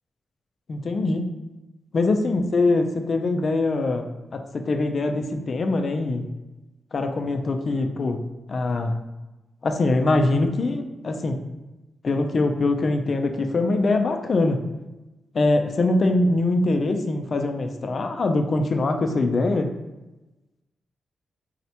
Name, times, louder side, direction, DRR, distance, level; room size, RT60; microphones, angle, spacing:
voice 1, 0.7-1.2 1.9-6.3 6.9-8.2 8.5-8.9 9.6-11.4 12.0-14.6 15.3-19.7, left 2 dB, 55° left, 6 dB, 0.4 m, -23 dB
4.0 x 2.1 x 2.8 m, 1.1 s
supercardioid pair, 55°, 0 cm